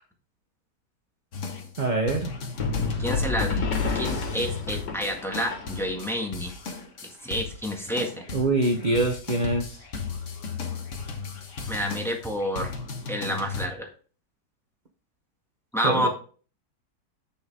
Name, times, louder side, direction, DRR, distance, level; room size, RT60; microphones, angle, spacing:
sound 1, 1.3-13.7, left 5 dB, 50° left, 1.4 m, -35 dB
voice 1, 1.8-2.3 8.3-9.8 15.8-16.1, right 2 dB, 35° right, 3 dB, 0.8 m, -24 dB
sound 2, 2.6-6.1, left 4 dB, 90° left, 2.2 m, -30 dB
voice 2, 3.0-3.7 3.9-6.5 7.2-8.2 11.7-12.7 13.1-13.9 15.7-16.1, equal, ahead, 1 dB, 1.6 m, -29 dB
8.5 x 6.4 x 3.6 m, 0.39 s
omnidirectional pair, 1.9 m